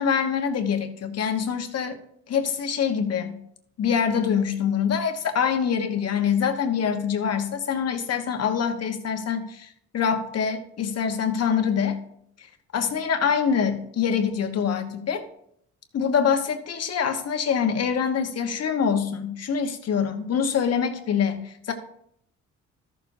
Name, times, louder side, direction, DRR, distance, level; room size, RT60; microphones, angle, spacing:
voice 1, 0.0-2.0 2.3-3.4 3.8-12.0 12.4-12.5 12.7-15.2 15.9-21.7, left 7 dB, 55° left, 6 dB, 1.3 m, -25 dB
13.5 x 6.9 x 2.7 m, 0.69 s
cardioid pair, 90°, 30 cm